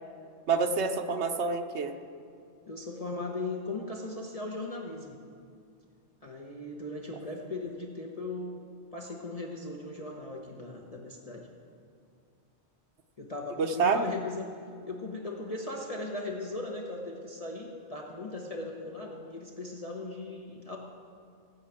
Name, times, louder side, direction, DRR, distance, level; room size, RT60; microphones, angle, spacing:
voice 1, 0.5-2.0 13.6-14.1, right 5 dB, 70° right, 7 dB, 1.1 m, -27 dB
voice 2, 2.7-5.2 6.2-8.6 8.9-11.5 13.2-14.6 14.8-20.8, left 2 dB, 35° left, -1 dB, 1.1 m, -38 dB
16.5 x 6.6 x 8.8 m, 2.3 s
omnidirectional pair, 1.2 m